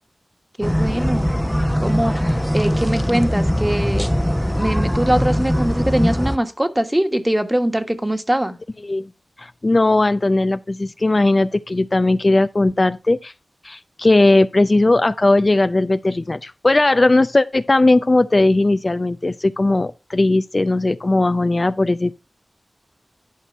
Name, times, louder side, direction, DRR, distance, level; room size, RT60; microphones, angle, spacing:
sound 1, 0.6-6.4, equal, ahead, 0.8 m, -21 dB
voice 1, 0.6-1.3 1.8-2.1 2.5-4.1 4.5-8.6, right 1 dB, 15° right, 1.4 m, -21 dB
voice 2, 9.4-13.3 13.6-22.2, left 2 dB, 45° left, 0.4 m, -17 dB
11.0 x 4.4 x 5.3 m
cardioid pair, 45°, 0 cm